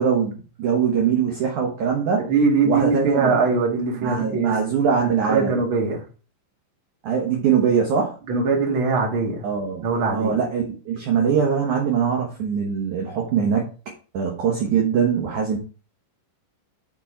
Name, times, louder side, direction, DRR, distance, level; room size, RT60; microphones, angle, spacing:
voice 1, 0.0-2.2 2.7-3.4 4.0-5.5 7.0-8.2 9.4-9.9 10.1-13.7 14.1-15.6, right 7 dB, 70° right, 0 dB, 1.9 m, -22 dB
voice 2, 2.3-4.5 5.0-6.0 8.3-9.5 9.8-10.4, right 4 dB, 40° right, 0 dB, 1.9 m, -22 dB
7.2 x 5.9 x 4.4 m, 0.36 s
omnidirectional pair, 5.4 m